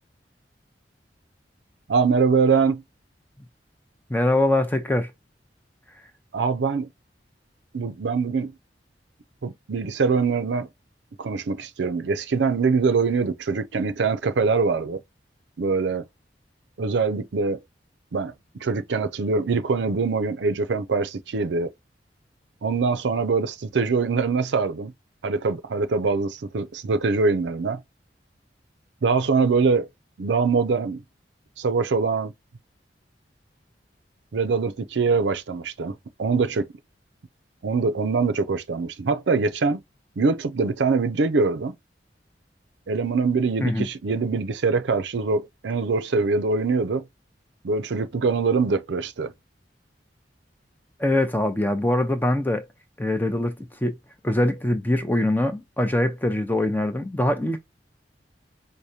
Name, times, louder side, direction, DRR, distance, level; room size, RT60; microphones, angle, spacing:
voice 1, 1.9-2.8 6.3-6.9 7.7-8.5 9.4-10.7 11.2-15.0 15.6-16.0 16.8-17.6 18.1-18.3 18.6-21.7 22.6-24.9 25.2-27.8 29.0-29.9 30.2-31.0 31.6-32.3 34.3-36.7 37.6-39.8 40.2-41.7 42.9-47.1 47.6-49.3, right 4 dB, 80° right, 0.5 m, -23 dB
voice 2, 4.1-5.1 43.6-43.9 51.0-52.6 53.0-53.5 53.8-54.0 54.2-57.6, left 1 dB, 10° left, 0.6 m, -23 dB
4.8 x 2.1 x 2.7 m
head